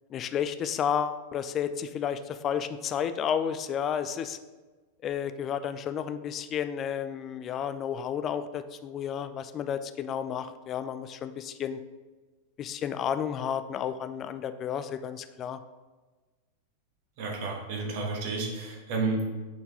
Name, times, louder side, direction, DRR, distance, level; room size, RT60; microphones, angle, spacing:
voice 1, 0.1-4.4 5.0-11.8 12.6-15.6, left 8 dB, 30° left, 11 dB, 0.3 m, -32 dB
voice 2, 17.2-19.2, right 3 dB, 50° right, 0 dB, 1.3 m, -31 dB
6.7 x 4.1 x 3.5 m, 1.3 s
figure-of-eight pair, 90°, 0 cm